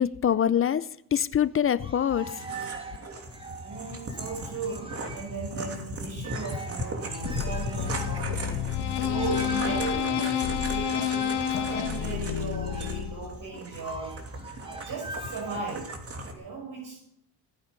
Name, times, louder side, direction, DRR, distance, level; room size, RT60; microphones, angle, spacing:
voice 1, 0.0-2.3, left 9 dB, 35° left, 17 dB, 0.6 m, -24 dB
sound 1, 1.6-5.5 5.8-5.9 6.2-16.0, right 2 dB, 15° right, 2.4 m, -43 dB
sound 2, 2.2-16.3, right 1 dB, 35° right, 2.9 m, -38 dB
voice 2, 3.6-14.2 14.6-15.9 16.3-17.0, right 4 dB, 50° right, 0 dB, 5.3 m, -37 dB
sound 3, 7.2-13.5, left 9 dB, 75° left, 1.8 m, -29 dB
17.0 x 9.9 x 5.3 m, 0.74 s
cardioid pair, 100°, 41 cm